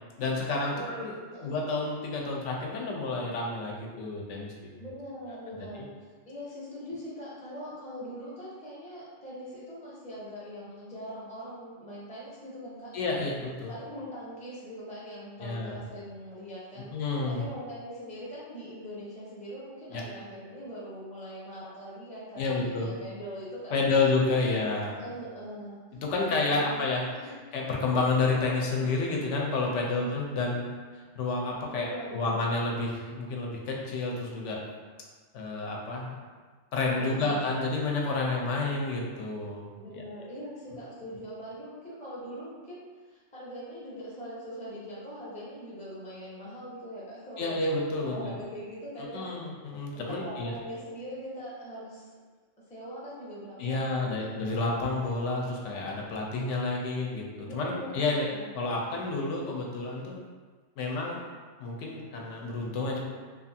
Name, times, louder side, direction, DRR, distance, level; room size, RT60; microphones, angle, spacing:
voice 1, 0.2-1.1 1.4-4.5 12.9-13.7 15.4-15.8 16.7-17.5 19.9-20.0 22.4-22.9 23.7-24.9 26.0-27.0 27.5-30.7 31.2-34.6 35.3-36.2 36.7-39.7 39.9-40.0 47.4-48.4 49.1-50.5 53.6-58.3 58.5-60.2 60.8-61.2 61.6-63.0, left 3 dB, 85° left, -1 dB, 0.9 m, -30 dB
voice 2, 4.8-12.9 13.7-16.9 17.3-24.1 24.9-27.3 29.8-30.1 31.7-32.5 37.0-37.6 39.8-47.6 48.0-49.3 49.9-52.1 52.7-54.5 57.4-58.5, equal, 10° left, -7 dB, 0.4 m, -42 dB
2.7 x 2.4 x 2.6 m, 1.5 s
omnidirectional pair, 1.2 m